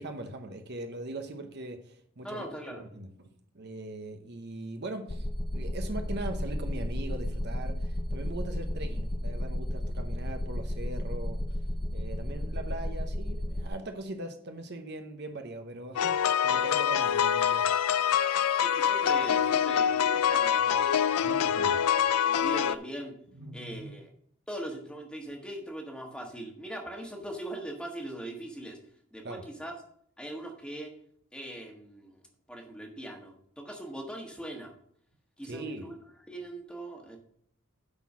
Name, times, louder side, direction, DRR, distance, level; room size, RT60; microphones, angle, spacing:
voice 1, 0.0-2.4 2.8-5.3 5.5-11.6 11.9-17.7 21.2-21.8 23.4-23.9 29.2-29.4 35.5-35.9, right 2 dB, 50° right, 6 dB, 0.9 m, -40 dB
voice 2, 2.2-2.8 18.6-21.0 21.4-23.1 23.5-24.1 24.5-28.8 29.1-29.7 30.2-30.9 31.3-32.2 32.5-34.7 35.4-36.0 36.3-37.2, right 1 dB, 5° left, 1 dB, 1.4 m, -41 dB
sound 1, 5.1-13.7, left 1 dB, 20° left, 0.6 m, -33 dB
sound 2, 16.0-22.8, left 8 dB, 85° left, 0.4 m, -25 dB
9.7 x 4.5 x 6.1 m, 0.65 s
head